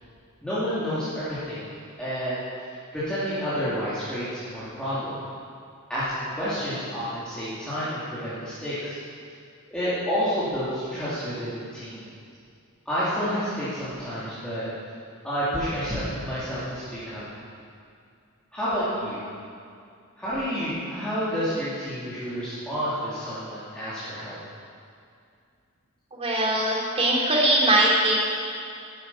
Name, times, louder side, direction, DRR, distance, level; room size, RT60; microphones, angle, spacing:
voice 1, 0.4-2.4 2.9-5.2 5.9-9.0 9.7-12.0 12.8-14.6 15.2-17.2 18.5-19.3 20.2-24.4, equal, 5° left, -13 dB, 3.1 m, -29 dB
voice 2, 26.1-28.1, right 1 dB, 30° right, -3 dB, 2.7 m, -21 dB
14.0 x 10.5 x 5.8 m, 2.4 s
head